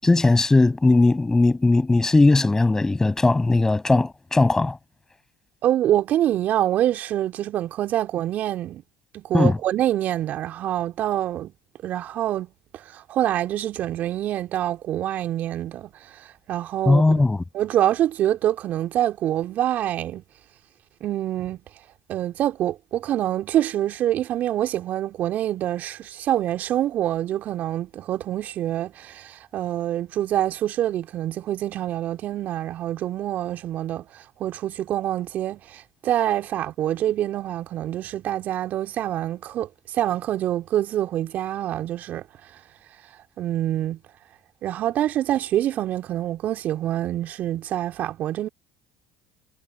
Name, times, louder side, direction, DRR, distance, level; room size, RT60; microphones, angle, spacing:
voice 1, 0.0-4.8 9.3-9.6 16.9-17.4, left 2 dB, 15° left, 6.1 m, -18 dB
voice 2, 5.6-8.8 9.1-11.5 11.8-17.0 17.5-20.2 21.0-21.6 22.1-42.6 43.1-44.0 44.6-48.5, right 12 dB, 55° right, 2.9 m, -26 dB
hypercardioid pair, 70°, 3 cm